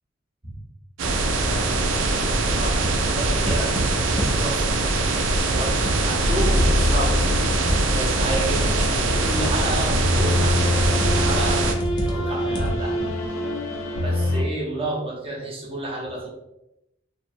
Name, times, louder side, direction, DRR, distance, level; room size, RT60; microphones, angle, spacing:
sound 1, 1.0-11.7, right 2 dB, 85° right, 0.4 m, -23 dB
voice 1, 1.4-3.7 4.4-4.7 5.5-7.5 7.9-11.7 11.9-13.0 13.4-13.5 14.0-16.3, right 1 dB, 30° right, -4 dB, 0.6 m, -31 dB
sound 2, 2.6-4.4 5.1-6.3 6.5-8.8 9.6-10.0 10.8-11.3 11.8-12.9, right 1 dB, 20° left, 0.4 m, -28 dB
sound 3, 6.2-14.4, left 1 dB, 90° left, 0.4 m, -25 dB
2.7 x 2.1 x 2.5 m, 0.89 s
head